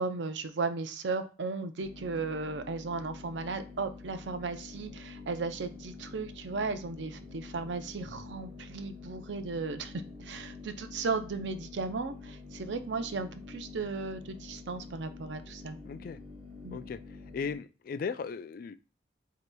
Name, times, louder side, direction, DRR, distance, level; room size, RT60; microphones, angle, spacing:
voice 1, 0.0-9.9 10.2-15.8 16.6-16.8, right 4 dB, 75° right, 9 dB, 0.5 m, -35 dB
sound 1, 1.8-17.6, left 3 dB, 35° right, 0.9 m, -47 dB
voice 2, 15.8-16.2 16.7-17.0 17.3-18.8, left 5 dB, 50° left, 13 dB, 0.3 m, -36 dB
7.9 x 2.9 x 2.2 m, 0.34 s
head